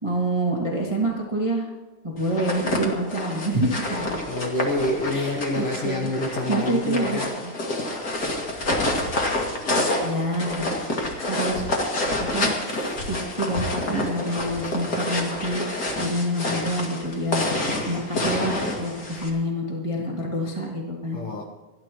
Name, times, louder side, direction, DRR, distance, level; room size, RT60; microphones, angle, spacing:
voice 1, 0.0-1.7 2.0-4.1 5.1-7.5 10.0-10.7 11.1-11.8 12.2-21.2, right 1 dB, 20° right, -3 dB, 0.9 m, -27 dB
sound 1, 2.2-19.3, left 1 dB, 30° left, 2.0 m, -28 dB
voice 2, 4.2-7.3 21.1-21.4, left 1 dB, 85° left, 2 dB, 1.2 m, -27 dB
28.0 x 11.5 x 3.1 m, 1.3 s
omnidirectional pair, 4.5 m